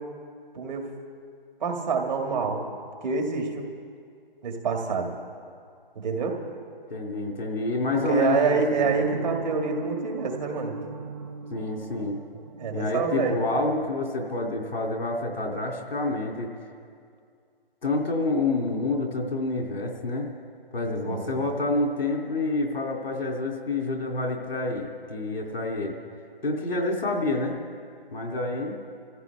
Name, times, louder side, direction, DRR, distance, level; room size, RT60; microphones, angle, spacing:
voice 1, 0.5-0.9 1.6-2.6 3.0-3.7 4.4-5.1 6.0-6.4 7.9-10.8 12.6-13.4 21.1-21.4, right 5 dB, 50° right, 2 dB, 2.2 m, -26 dB
voice 2, 6.9-8.9 11.5-12.2 12.7-16.5 17.8-20.3 20.7-26.0 26.4-27.6 28.1-28.7, left 2 dB, 85° left, 1 dB, 3.0 m, -28 dB
sound 1, 8.9-13.6, right 3 dB, 30° right, 0.5 m, -37 dB
27.5 x 15.0 x 3.5 m, 2.3 s
hypercardioid pair, 160°, 29 cm